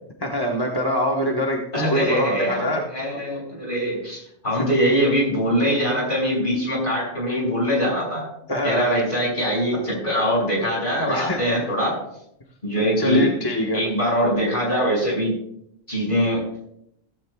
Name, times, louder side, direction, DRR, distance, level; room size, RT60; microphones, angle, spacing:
voice 1, 0.2-2.8 4.6-4.7 8.5-9.0 11.1-11.4 13.0-13.8, equal, 20° left, 0 dB, 1.2 m, -23 dB
voice 2, 1.7-8.3 8.6-12.0 12.6-13.3 13.7-15.3 15.9-16.4, equal, 45° left, -2 dB, 6.1 m, -22 dB
16.0 x 15.0 x 2.3 m, 0.74 s
omnidirectional pair, 1.2 m